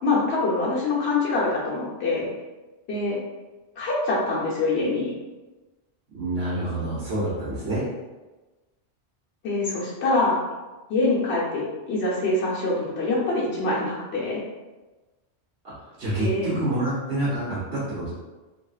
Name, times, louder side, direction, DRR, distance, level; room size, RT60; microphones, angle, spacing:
voice 1, 0.0-2.3 2.9-3.2 3.8-5.1 9.4-10.4 10.9-14.4 16.2-16.5, left 2 dB, 65° left, -6 dB, 1.2 m, -24 dB
voice 2, 6.1-7.8 15.8-18.1, right 1 dB, 65° right, -11 dB, 1.2 m, -27 dB
3.1 x 2.8 x 2.4 m, 1.2 s
omnidirectional pair, 1.2 m